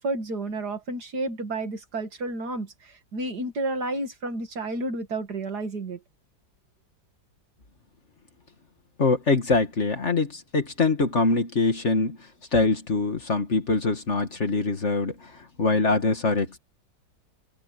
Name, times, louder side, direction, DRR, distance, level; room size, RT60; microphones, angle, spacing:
voice 1, 0.0-6.0, right 2 dB, 65° right, 2.8 m, -31 dB
voice 2, 9.0-12.2 12.5-15.1 15.6-16.6, left 3 dB, 40° left, 1.9 m, -23 dB
open air
omnidirectional pair, 1.9 m